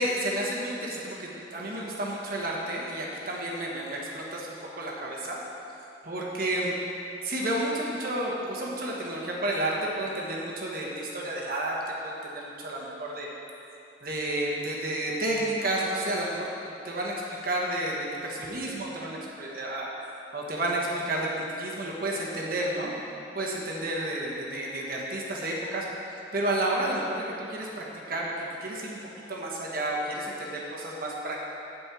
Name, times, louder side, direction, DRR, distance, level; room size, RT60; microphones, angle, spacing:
voice 1, 0.0-5.4 6.0-6.7 7.2-13.3 14.0-16.5 16.8-19.9 20.3-22.9 23.3-25.9 26.3-29.0 29.3-31.4, right 1 dB, 50° right, -3 dB, 1.4 m, -31 dB
8.6 x 5.4 x 7.5 m, 2.8 s
head